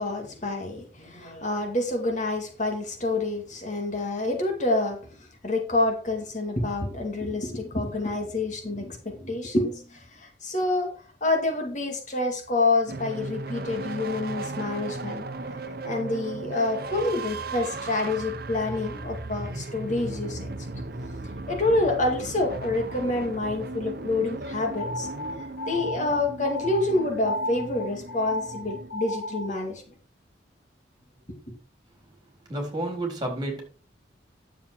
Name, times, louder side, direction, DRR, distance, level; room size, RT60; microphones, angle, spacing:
voice 1, 0.0-10.9 11.2-15.3 15.8-20.5 21.5-25.1 25.7-29.8, left 2 dB, 40° left, 2.2 m, -27 dB
sound 1, 12.9-28.9, right 3 dB, 55° right, 0.9 m, -36 dB
sound 2, 24.7-29.6, left 1 dB, 65° left, 2.9 m, -34 dB
voice 2, 32.5-33.7, right 1 dB, 20° right, 3.7 m, -30 dB
10.5 x 7.2 x 4.5 m
head